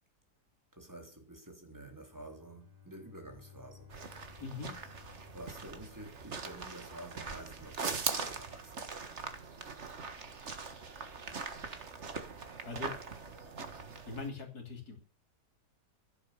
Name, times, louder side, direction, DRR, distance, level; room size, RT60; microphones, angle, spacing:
voice 1, 0.7-3.9 5.3-8.9, right 1 dB, 10° right, 3.6 m, -50 dB
Bowed string instrument, 2.0-7.0, left 8 dB, 10° left, 5.2 m, -59 dB
sound 1, 3.9-14.3, right 4 dB, 45° right, 1.8 m, -41 dB
voice 2, 4.4-4.8 12.6-12.9 14.1-15.0, left 4 dB, 70° left, 3.8 m, -41 dB
15.5 x 9.0 x 6.9 m
omnidirectional pair, 1.7 m